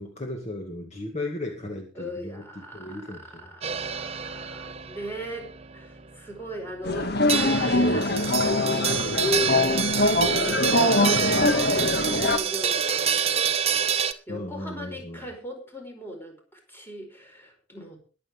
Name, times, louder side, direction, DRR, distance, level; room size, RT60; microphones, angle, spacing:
voice 1, 0.0-2.4 2.7-3.5 11.1-11.4 14.3-15.3, left 1 dB, 35° left, 2 dB, 2.3 m, -36 dB
voice 2, 1.9-18.0, equal, 10° left, 2 dB, 4.8 m, -39 dB
sound 1, 3.6-14.1, right 8 dB, 35° right, 1.1 m, -28 dB
sound 2, 6.8-12.4, left 2 dB, 60° left, 1.7 m, -23 dB
22.0 x 7.9 x 3.7 m, 0.37 s
head